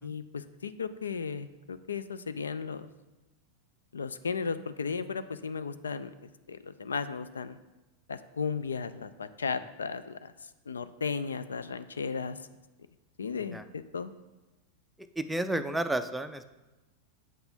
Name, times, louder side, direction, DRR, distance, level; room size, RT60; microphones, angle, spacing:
voice 1, 0.0-2.9 3.9-7.6 8.1-12.4 13.2-14.1, left 5 dB, 70° left, 13 dB, 0.4 m, -35 dB
voice 2, 15.0-16.5, right 1 dB, 5° right, 8 dB, 0.4 m, -32 dB
7.5 x 5.9 x 5.3 m, 1.1 s
figure-of-eight pair, 90°, 0 cm